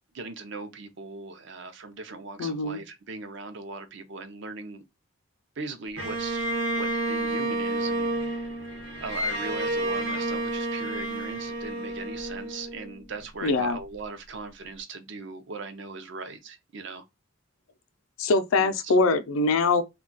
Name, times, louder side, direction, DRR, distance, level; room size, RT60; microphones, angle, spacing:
voice 1, 0.1-4.8 5.6-6.5 6.8-8.7 9.0-17.0 18.6-19.0, right 3 dB, 60° right, 0.5 m, -39 dB
voice 2, 2.4-2.8 13.4-13.8 18.2-19.8, left 3 dB, 80° left, 0.5 m, -23 dB
Bowed string instrument, 6.0-13.2, right 1 dB, 80° right, 0.9 m, -30 dB
2.3 x 2.2 x 3.7 m
head